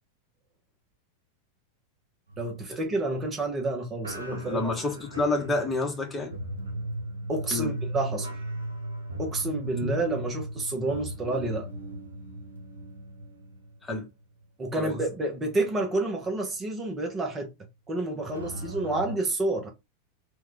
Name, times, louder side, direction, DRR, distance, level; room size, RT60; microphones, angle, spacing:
sound 1, 2.3-3.6 4.0-14.4 14.7-14.9 15.6-15.7 18.3-19.1, right 1 dB, 80° right, 0.8 m, -37 dB
voice 1, 2.4-4.7 7.3-8.3 9.2-11.7 14.6-17.5 17.9-19.7, right 2 dB, 20° right, 0.8 m, -29 dB
voice 2, 4.3-6.3 7.5-7.7 9.8-9.9 13.8-14.1 14.8-15.0, left 2 dB, 15° left, 0.9 m, -29 dB
2.8 x 2.2 x 3.8 m
figure-of-eight pair, 90°, 0 cm